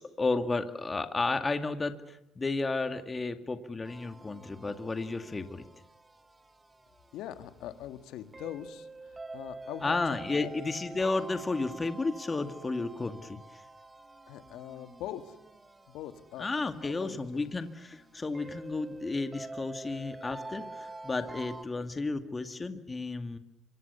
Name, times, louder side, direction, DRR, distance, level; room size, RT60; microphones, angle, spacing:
voice 1, 0.0-5.7 9.8-13.6 16.4-23.4, left 3 dB, 25° left, 8 dB, 2.2 m, -32 dB
sound 1, 3.8-21.6, right 2 dB, 20° right, 2.0 m, -47 dB
voice 2, 7.1-10.0 10.3-10.5 14.3-15.4 15.9-17.5, left 12 dB, 75° left, 9 dB, 2.0 m, -42 dB
27.0 x 25.0 x 7.0 m, 0.87 s
supercardioid pair, 80°, 0 cm